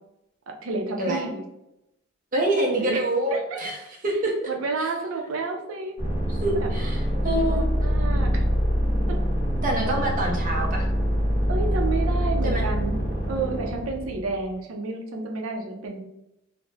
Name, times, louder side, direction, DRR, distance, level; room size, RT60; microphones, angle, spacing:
voice 1, 0.5-1.4 2.7-3.0 3.3-3.7 4.5-6.0 6.5-6.7 7.1-8.4 9.1-9.2 9.9-10.0 11.5-12.9 13.3-16.0, right 3 dB, 85° right, 3 dB, 0.5 m, -31 dB
voice 2, 2.3-4.3 4.8-4.9 6.3-7.6 9.6-10.9 12.4-12.7, right 1 dB, 40° right, 0 dB, 0.6 m, -26 dB
sound 1, 6.0-14.4, equal, 15° right, 0.9 m, -24 dB
2.3 x 2.0 x 3.1 m, 0.86 s
head